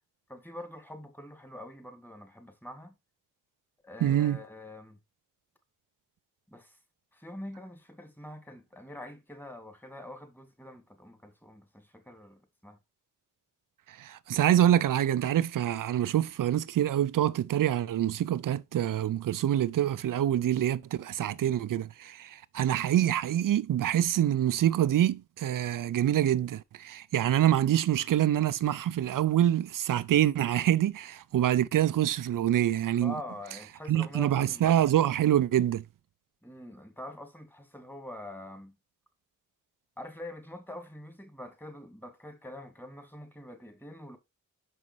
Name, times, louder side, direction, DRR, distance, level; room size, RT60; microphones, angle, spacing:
voice 1, 0.3-2.9 3.8-5.0 6.5-6.8 7.1-12.8 32.9-34.7 36.4-38.8 40.0-44.2, left 1 dB, 5° left, 2.3 m, -45 dB
voice 2, 4.0-4.4 13.9-33.1 33.9-35.8, right 11 dB, 75° right, 0.5 m, -26 dB
6.3 x 5.5 x 4.6 m
cardioid pair, 55°, 33 cm